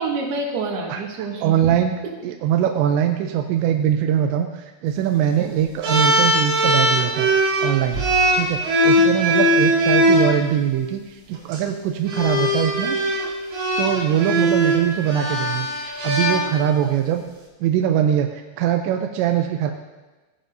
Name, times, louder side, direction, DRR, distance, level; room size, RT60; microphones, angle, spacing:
voice 1, 0.0-1.7 2.0-2.1 5.4-5.5 8.9-9.0, right 3 dB, 65° right, -1 dB, 3.2 m, -28 dB
voice 2, 1.4-1.9 2.2-7.3 7.6-8.0 8.4-13.0 13.8-17.2 17.6-19.7, right 10 dB, 85° right, 4 dB, 2.6 m, -22 dB
sound 1, 5.8-10.3 11.3-11.6 12.1-16.9, equal, 50° right, 2.2 m, -20 dB
17.0 x 10.0 x 2.7 m, 1.2 s
omnidirectional pair, 5.7 m